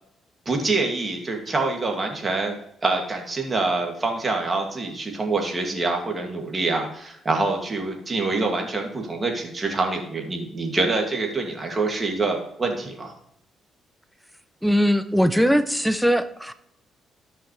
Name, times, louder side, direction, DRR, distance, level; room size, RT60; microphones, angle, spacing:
voice 1, 0.5-13.1, right 3 dB, 30° right, 2 dB, 2.3 m, -26 dB
voice 2, 14.6-16.5, equal, ahead, 11 dB, 0.7 m, -20 dB
13.5 x 5.8 x 3.3 m, 0.76 s
cardioid pair, 90°, 0 cm